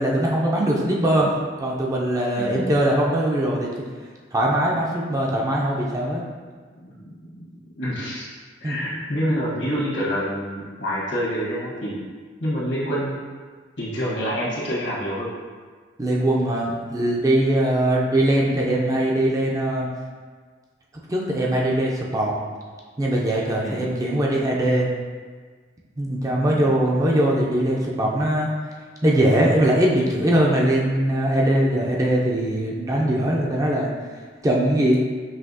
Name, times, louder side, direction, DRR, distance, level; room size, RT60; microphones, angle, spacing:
voice 1, 0.0-1.3 1.6-3.7 4.3-6.2 8.6-8.8 16.0-19.9 21.1-22.3 23.0-24.9 26.0-28.5 29.0-33.9 34.4-35.0, right 1 dB, 20° right, -3 dB, 0.4 m, -21 dB
voice 2, 2.4-2.7 6.8-8.2 8.6-11.9 12.4-13.2 13.8-15.3 23.6-23.8 26.4-26.7, equal, 75° left, -7 dB, 1.3 m, -27 dB
5.6 x 2.7 x 2.7 m, 1.5 s
head